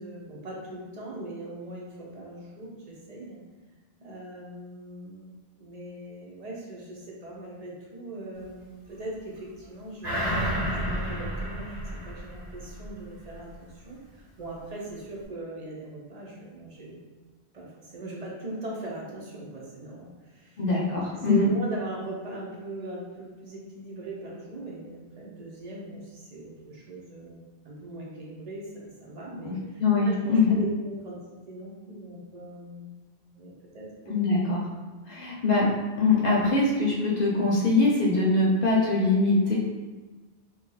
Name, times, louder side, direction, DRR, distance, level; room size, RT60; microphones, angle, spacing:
voice 1, 0.0-3.4 4.0-5.3 5.6-11.8 12.0-17.0 17.5-20.6 21.1-31.2 31.5-32.9 33.3-33.9, right 2 dB, 45° right, -3 dB, 0.7 m, -39 dB
sound 1, 10.0-12.9 13.3-13.4, equal, 90° right, 1.2 m, -30 dB
voice 2, 20.6-21.5 29.8-30.6 34.1-34.6 35.1-35.7 36.0-39.5, left 3 dB, 60° left, -4 dB, 0.8 m, -22 dB
2.7 x 2.3 x 3.8 m, 1.2 s
omnidirectional pair, 1.1 m